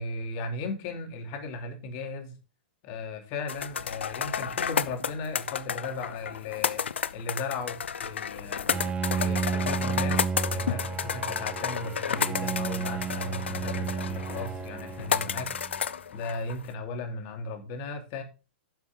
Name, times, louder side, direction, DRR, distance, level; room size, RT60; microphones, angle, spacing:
voice 1, 0.0-2.3 2.8-6.8 7.1-8.7 9.2-15.5 16.1-18.2, left 3 dB, 45° left, 3.1 m, -36 dB
sound 1, 3.5-16.7, left 7 dB, 90° left, 0.7 m, -32 dB
Bowed string instrument, 8.7-15.8, right 5 dB, 15° right, 0.6 m, -32 dB
10.0 x 7.1 x 3.9 m
hypercardioid pair, 130°, 6 cm